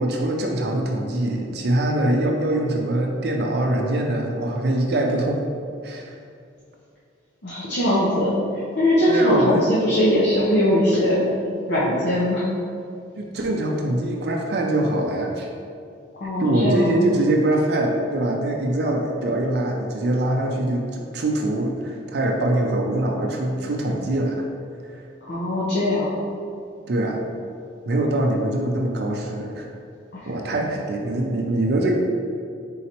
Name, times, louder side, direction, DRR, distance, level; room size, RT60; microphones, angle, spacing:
voice 1, 0.0-5.4 5.8-6.2 9.1-9.7 13.1-15.5 16.4-24.5 24.8-25.0 26.9-27.2 27.9-29.7 30.3-31.9, right 1 dB, 55° right, 1 dB, 0.4 m, -23 dB
voice 2, 7.4-11.2 11.7-12.4 16.2-16.9 25.3-26.1 30.1-30.3, left 1 dB, 65° left, -9 dB, 0.7 m, -21 dB
4.2 x 3.8 x 2.9 m, 2.4 s
head